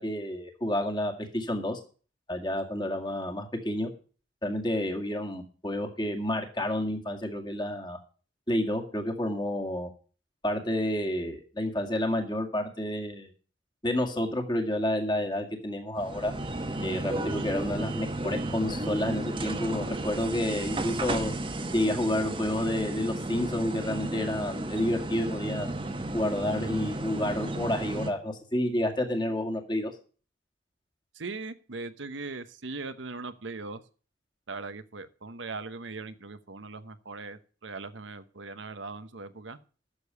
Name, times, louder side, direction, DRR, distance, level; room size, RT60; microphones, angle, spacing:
voice 1, 0.0-1.8 2.3-3.9 4.4-8.0 8.5-9.9 10.4-13.3 13.8-16.3 16.8-21.3 21.7-25.7 26.1-29.9, left 1 dB, 25° left, 4 dB, 2.0 m, -30 dB
sound 1, 15.9-28.1, right 2 dB, 25° right, 1.1 m, -33 dB
voice 2, 31.1-33.8 34.5-39.6, right 3 dB, 80° right, 11 dB, 1.0 m, -39 dB
11.5 x 7.0 x 6.9 m, 0.39 s
head